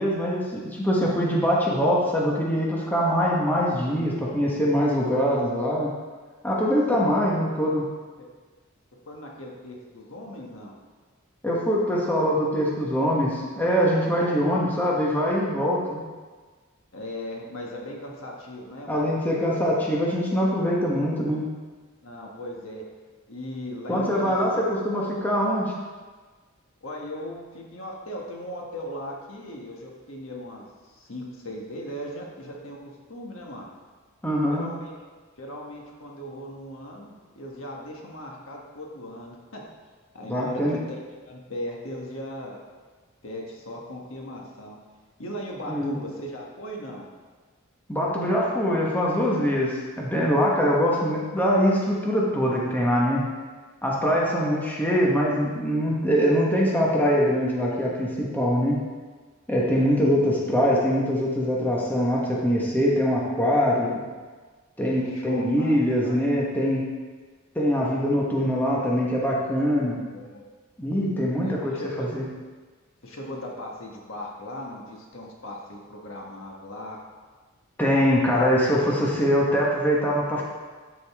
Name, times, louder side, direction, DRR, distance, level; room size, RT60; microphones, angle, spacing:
voice 1, 0.0-5.9 6.4-7.8 11.4-16.0 18.9-21.4 23.9-25.7 34.2-34.7 40.3-40.8 45.7-46.0 47.9-53.2 53.8-58.8 59.5-64.0 64.8-66.8 67.5-70.0 70.8-72.2 77.8-80.4, equal, 10° left, -4 dB, 1.2 m, -23 dB
voice 2, 7.0-7.4 9.1-10.8 13.8-14.4 16.9-19.1 22.0-22.8 23.3-24.6 26.8-32.8 33.1-33.7 34.5-34.9 35.4-39.6 40.1-40.6 40.9-42.6 43.2-44.8 45.2-47.1 59.7-60.0 64.9-65.8 66.0-66.2 70.0-70.4 71.4-72.1 73.0-77.0, left 1 dB, 70° left, -1 dB, 1.4 m, -38 dB
12.5 x 5.2 x 3.6 m, 1.4 s
head